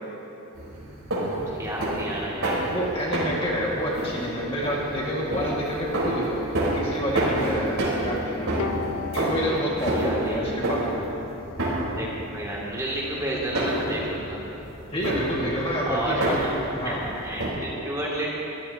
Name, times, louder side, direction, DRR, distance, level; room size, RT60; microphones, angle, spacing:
Steps on metal, 0.5-17.5, right 1 dB, 85° right, 3.9 m, -29 dB
voice 1, 1.3-2.6 9.9-10.7 11.8-14.5 15.8-16.5 16.8-18.3, right 1 dB, 15° right, -5 dB, 2.3 m, -31 dB
voice 2, 2.7-6.5 6.7-8.5 9.1-11.1 14.9-16.4 16.7-17.0, equal, 25° left, -5 dB, 1.8 m, -28 dB
Wind instrument woodwind instrument, 6.5-11.4, right 4 dB, 50° right, 3.9 m, -46 dB
Bowed string instrument, 8.6-11.9, left 6 dB, 85° left, 0.5 m, -38 dB
23.5 x 14.5 x 2.8 m, 3.0 s
head